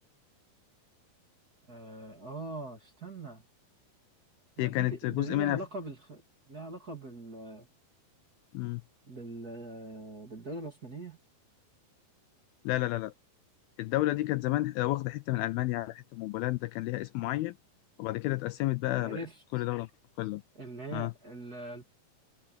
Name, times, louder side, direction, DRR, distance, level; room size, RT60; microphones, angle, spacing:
voice 1, 1.7-3.4 4.6-7.7 9.1-11.2 19.0-19.4 20.6-21.8, right 2 dB, 25° right, 2.5 m, -42 dB
voice 2, 4.6-5.6 8.5-8.8 12.6-13.1 13.8-17.6 18.0-19.2 19.5-19.9 20.2-20.4 20.9-21.1, left 17 dB, 80° left, 2.3 m, -31 dB
omnidirectional pair, 4.7 m